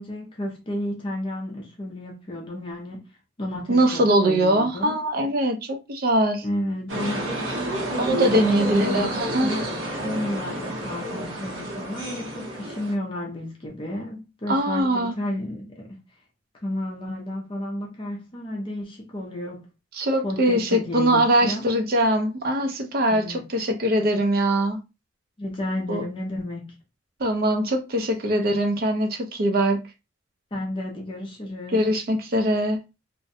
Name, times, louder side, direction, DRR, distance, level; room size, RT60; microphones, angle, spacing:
voice 1, 0.0-3.1 3.4-5.0 6.4-16.0 16.6-19.7 20.2-21.6 23.1-23.5 25.4-26.8 30.5-31.9, left 1 dB, 25° left, 0.5 m, -32 dB
voice 2, 3.7-6.4 8.0-9.5 14.5-15.1 19.9-24.8 25.9-26.0 27.2-29.9 31.7-32.8, right 1 dB, 50° right, 0.5 m, -22 dB
sound 1, 6.9-12.9, equal, 75° right, 0.8 m, -30 dB
2.5 x 2.0 x 2.6 m
head